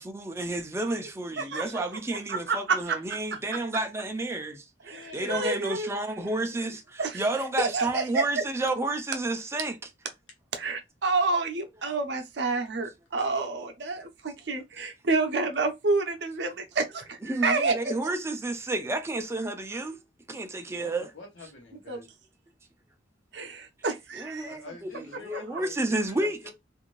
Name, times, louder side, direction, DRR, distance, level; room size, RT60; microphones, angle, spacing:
voice 1, 0.0-9.9 17.2-20.0 20.3-21.1 24.1-26.5, right 2 dB, 15° right, 0.4 m, -31 dB
voice 2, 2.3-3.0 4.9-5.9 7.0-7.2 7.6-8.2 10.5-17.9 21.9-22.0 23.3-24.5 25.3-25.4, right 3 dB, 65° right, 0.6 m, -29 dB
voice 3, 4.9-5.4 6.5-6.8 20.7-22.1 24.4-26.3, left 3 dB, 80° left, 1.0 m, -46 dB
2.6 x 2.5 x 3.0 m
head